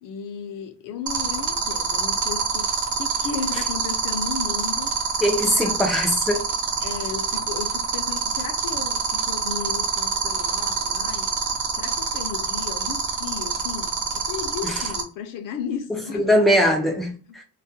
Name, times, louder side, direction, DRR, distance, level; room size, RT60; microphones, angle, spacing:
voice 1, 0.0-4.9 5.5-5.8 6.8-11.3 11.8-16.3, left 7 dB, 55° left, 0.6 m, -34 dB
sound 1, 1.1-15.0, right 6 dB, 45° right, 0.7 m, -25 dB
voice 2, 5.2-6.5 14.6-14.8 16.1-17.4, equal, ahead, 0.3 m, -21 dB
2.3 x 2.1 x 2.5 m
cardioid pair, 170°, 40 cm